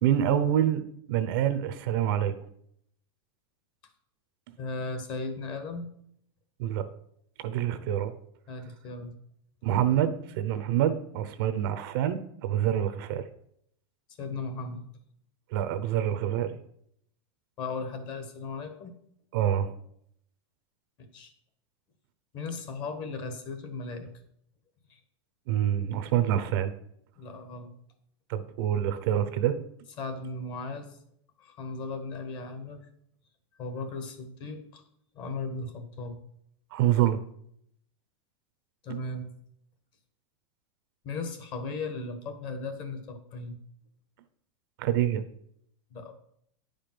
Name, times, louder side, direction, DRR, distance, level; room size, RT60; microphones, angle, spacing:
voice 1, 0.0-0.8 1.1-2.3 6.6-6.8 7.4-8.1 9.6-13.2 15.5-16.6 19.3-19.7 25.5-26.7 28.3-29.6 36.7-37.2 44.8-45.2, right 11 dB, 45° right, 12 dB, 0.7 m, -26 dB
voice 2, 4.6-5.9 8.5-9.1 14.2-14.8 17.6-18.9 21.0-21.3 22.3-24.1 24.9-25.0 27.2-27.7 30.0-31.0 31.4-32.8 33.6-34.8 35.1-36.2 38.8-39.3 41.0-43.6 45.9-46.2, left 3 dB, 30° left, 7 dB, 1.3 m, -37 dB
10.0 x 5.1 x 5.9 m, 0.70 s
supercardioid pair, 165°, 16 cm